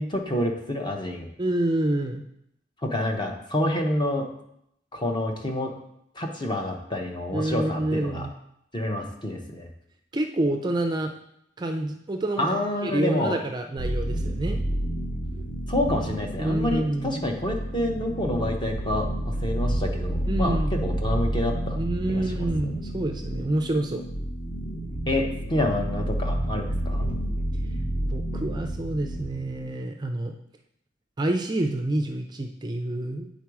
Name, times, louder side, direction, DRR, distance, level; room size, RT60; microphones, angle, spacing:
voice 1, 0.0-1.3 2.8-4.3 4.9-5.7 6.1-8.3 8.7-9.7 12.4-13.4 15.7-21.8 22.1-22.5 25.1-27.1, left 1 dB, 25° left, 2 dB, 0.8 m, -28 dB
voice 2, 1.4-2.2 7.3-8.3 10.1-11.1 11.6-14.6 16.4-17.2 20.3-20.9 21.7-24.0 28.0-30.3 31.2-33.3, right 1 dB, 25° right, 4 dB, 0.4 m, -28 dB
sound 1, 13.8-29.7, right 1 dB, 45° left, 1.1 m, -30 dB
8.3 x 3.9 x 4.7 m, 0.76 s
head